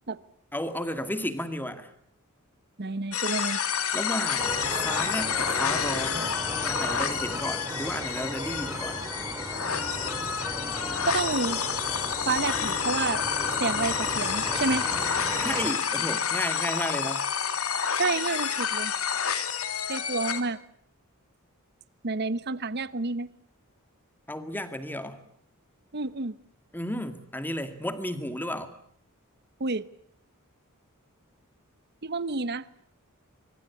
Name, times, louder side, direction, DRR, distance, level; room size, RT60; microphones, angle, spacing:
voice 1, 0.5-1.9 3.9-6.3 6.7-9.1 15.4-17.3 24.3-25.2 26.7-28.7, left 1 dB, 10° left, 2.2 m, -33 dB
voice 2, 2.8-3.6 11.1-11.6 12.3-13.2 13.6-14.9 18.0-18.9 19.9-20.6 22.0-23.3 25.9-26.3 29.6-29.8 32.0-32.7, right 3 dB, 50° right, 1.0 m, -29 dB
sound 1, 3.1-20.4, left 7 dB, 90° left, 2.8 m, -29 dB
sound 2, 4.4-15.7, right 1 dB, 15° right, 3.0 m, -36 dB
24.5 x 24.5 x 8.4 m
head